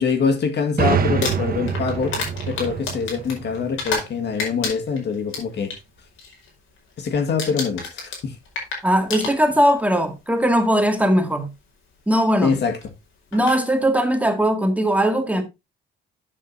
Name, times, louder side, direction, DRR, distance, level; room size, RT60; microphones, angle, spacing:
voice 1, 0.0-2.1 2.5-5.7 7.0-8.4 12.4-12.8, left 5 dB, 60° left, 1.8 m, -24 dB
sound 1, 0.8-4.4, right 6 dB, 50° right, 1.3 m, -26 dB
Crumpling crinkling, 1.0-4.1 4.4-5.8 6.2-6.5 6.8-7.1 7.4-9.8 10.7-10.8 12.8-12.9 13.3-13.6, left 4 dB, 80° left, 4.8 m, -30 dB
voice 2, 8.8-11.5 12.1-12.5 13.3-15.4, equal, 5° right, 2.1 m, -19 dB
11.5 x 7.7 x 2.7 m
cardioid pair, 90°, 20 cm